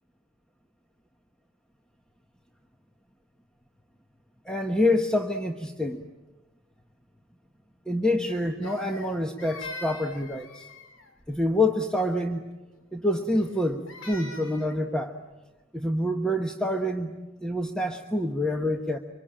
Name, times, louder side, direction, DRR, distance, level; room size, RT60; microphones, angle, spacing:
voice 1, 4.4-6.0 7.9-10.7 11.3-12.4 12.9-15.1 15.7-17.1 17.4-19.0, left 1 dB, 5° left, 3 dB, 1.1 m, -27 dB
Crying sobbing, 8.6-11.1 13.4-14.8, left 2 dB, 85° left, 2.5 m, -42 dB
26.5 x 25.0 x 8.8 m, 1.1 s
head